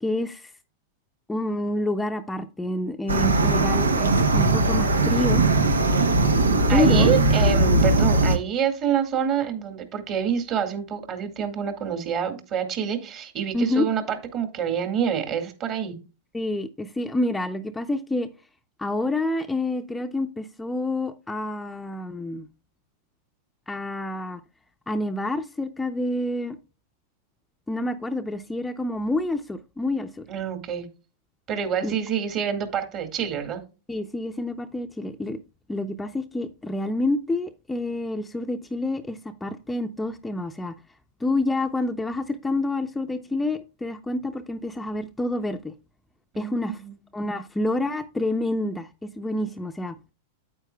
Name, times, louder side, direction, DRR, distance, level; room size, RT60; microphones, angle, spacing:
voice 1, 0.0-0.5 1.3-5.4 6.7-7.1 13.5-13.9 16.3-18.3 18.8-22.5 23.7-24.4 24.9-26.6 27.7-30.2 31.8-31.9 33.9-35.4 35.7-40.7 41.2-45.7 46.4-46.8 47.1-48.9 49.2-49.9, left 2 dB, 10° left, 0.6 m, -28 dB
sound 1, 3.1-8.4, right 2 dB, 90° right, 0.9 m, -19 dB
voice 2, 6.7-15.9 30.3-30.9 31.5-33.6 46.3-46.9, right 8 dB, 40° right, 2.0 m, -27 dB
9.0 x 8.6 x 2.2 m
hypercardioid pair, 100°, 0 cm